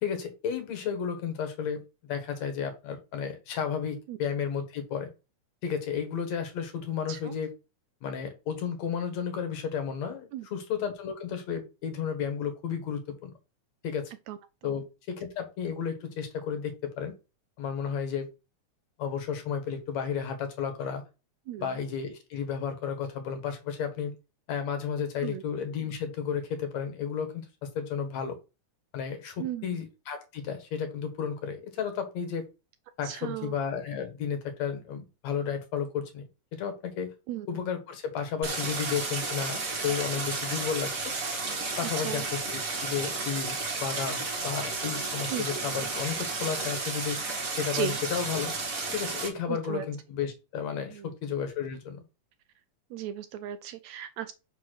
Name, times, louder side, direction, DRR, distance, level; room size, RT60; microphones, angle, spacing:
voice 1, 0.0-5.1 5.6-7.5 8.0-13.3 13.8-14.1 14.6-17.1 17.6-18.3 19.0-21.0 21.6-24.1 24.5-28.4 28.9-32.5 33.0-37.1 37.5-41.1 41.8-47.2 47.6-48.5 48.9-52.0, left 7 dB, 65° left, 2.6 m, -33 dB
voice 2, 29.4-29.8 33.0-33.5 37.3-37.5 42.0-42.2 45.3-45.5 47.7-48.0 49.5-49.9 50.9-51.1 52.9-54.3, right 11 dB, 80° right, 1.7 m, -36 dB
Stream, 38.4-49.3, right 3 dB, 35° right, 1.7 m, -32 dB
5.7 x 4.2 x 6.2 m
omnidirectional pair, 3.4 m